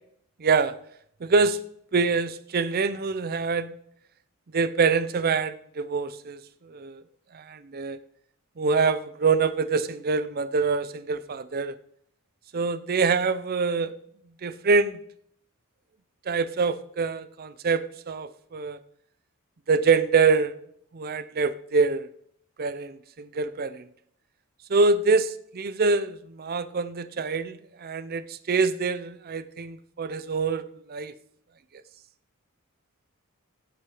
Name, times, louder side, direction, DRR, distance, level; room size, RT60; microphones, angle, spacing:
voice 1, 0.4-0.7 1.2-1.6 1.9-3.8 4.5-7.0 7.3-8.0 8.6-11.7 12.5-13.9 14.4-15.0 16.3-18.8 19.7-20.5 20.9-22.1 22.6-23.9 24.7-30.6 30.9-31.1, right 4 dB, 45° right, 15 dB, 0.5 m, -25 dB
17.0 x 6.0 x 4.9 m, 0.70 s
head